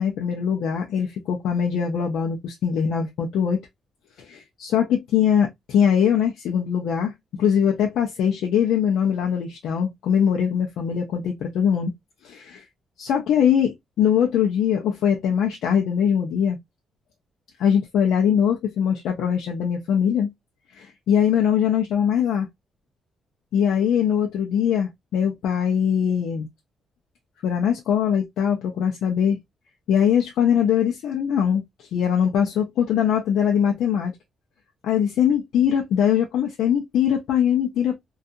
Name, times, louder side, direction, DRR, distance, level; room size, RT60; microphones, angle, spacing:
voice 1, 0.0-3.6 4.2-7.1 7.4-11.9 12.2-12.6 13.0-16.6 17.6-20.3 20.7-22.5 23.5-26.5 27.4-29.4 29.9-34.1 34.8-38.0, left 8 dB, 80° left, 0.5 m, -22 dB
2.7 x 2.3 x 2.3 m
cardioid pair, 180°, 0 cm